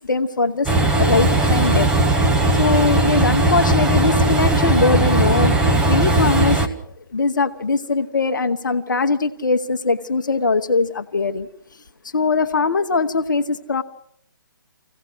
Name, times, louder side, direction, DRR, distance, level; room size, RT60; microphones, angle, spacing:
voice 1, 0.1-0.7 0.9-1.9 2.6-5.5 5.9-6.6 7.1-11.5 12.1-13.8, left 4 dB, 65° left, 7 dB, 1.1 m, -21 dB
Train, 0.7-6.7, right 2 dB, 10° right, 1.4 m, -17 dB
26.0 x 16.5 x 6.2 m, 0.68 s
figure-of-eight pair, 140°, 11 cm